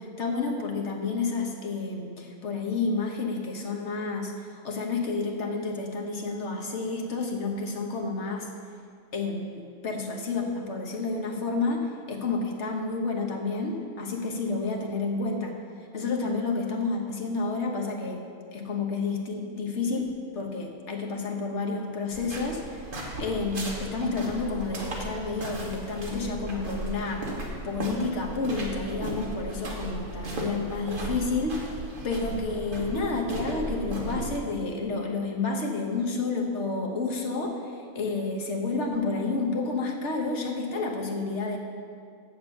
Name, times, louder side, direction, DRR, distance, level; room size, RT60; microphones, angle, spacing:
voice 1, 0.0-8.5 9.1-18.2 18.5-20.1 20.3-22.9 23.2-27.2 27.6-41.6, left 3 dB, 50° left, 1 dB, 1.3 m, -30 dB
sound 1, 22.1-34.4, right 1 dB, 35° right, 1.4 m, -36 dB
7.3 x 7.0 x 7.1 m, 2.3 s
omnidirectional pair, 1.6 m